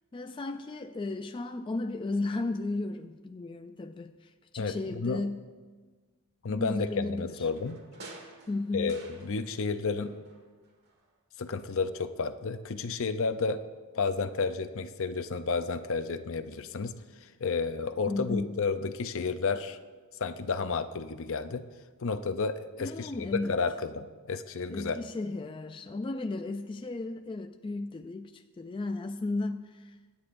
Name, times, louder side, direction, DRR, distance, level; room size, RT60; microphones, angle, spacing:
voice 1, 0.1-5.4 6.5-7.5 8.5-9.0 18.1-18.5 22.8-23.6 24.7-30.0, left 2 dB, 20° left, 0.3 m, -34 dB
voice 2, 4.6-5.2 6.4-7.8 8.7-10.2 11.4-13.6 13.9-16.9 17.2-19.8 20.2-21.6 22.0-25.0, left 4 dB, 60° left, 0.6 m, -31 dB
sound 1, 7.3-9.8 10.0-11.1 11.4-11.5, right 2 dB, 45° right, 1.8 m, -51 dB
24.5 x 9.8 x 2.6 m
head